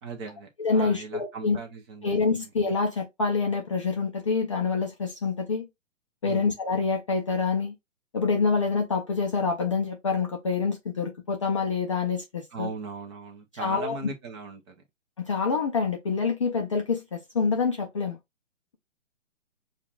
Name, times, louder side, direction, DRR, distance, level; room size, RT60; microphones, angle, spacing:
voice 1, 0.0-2.5 6.2-6.5 12.5-14.8, right 4 dB, 20° right, 0.7 m, -39 dB
voice 2, 0.6-1.6 2.0-5.7 6.2-7.7 8.1-12.7 13.5-14.0 15.2-18.2, left 4 dB, 25° left, 0.4 m, -26 dB
6.7 x 2.4 x 2.3 m
figure-of-eight pair, 135°, 39 cm